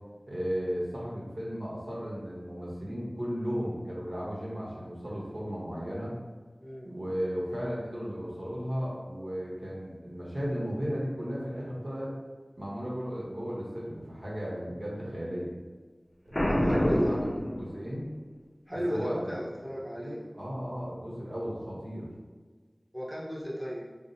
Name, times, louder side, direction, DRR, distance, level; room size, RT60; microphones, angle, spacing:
voice 1, 0.3-6.1 6.8-12.1 12.6-15.5 16.2-18.1 18.7-19.3 20.0-22.1, equal, 60° right, -6 dB, 1.1 m, -35 dB
voice 2, 6.6-6.9 16.5-17.1 18.7-20.2 22.9-23.8, equal, 5° right, -7 dB, 1.0 m, -34 dB
Boom, 16.3-18.2, equal, 45° left, 0.5 m, -27 dB
5.7 x 2.1 x 2.7 m, 1.4 s
wide cardioid pair, 50°, 0 cm